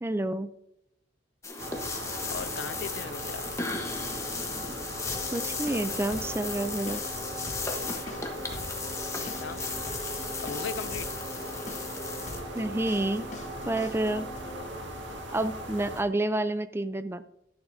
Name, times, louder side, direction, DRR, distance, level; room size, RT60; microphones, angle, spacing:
voice 1, 0.0-0.5 5.3-7.0 12.5-13.3 13.7-14.3 15.3-17.2, right 2 dB, 15° right, 12 dB, 0.4 m, -29 dB
sound 1, 1.4-12.4, left 4 dB, 15° left, 1.1 m, -36 dB
sound 2, 1.6-16.0, equal, 80° right, 1.9 m, -39 dB
voice 2, 2.3-3.5 9.2-9.8 10.4-11.1, left 5 dB, 75° left, 16 dB, 0.4 m, -38 dB
sound 3, 5.1-14.7, left 1 dB, 40° left, 1.1 m, -43 dB
11.5 x 9.7 x 2.7 m, 0.79 s
head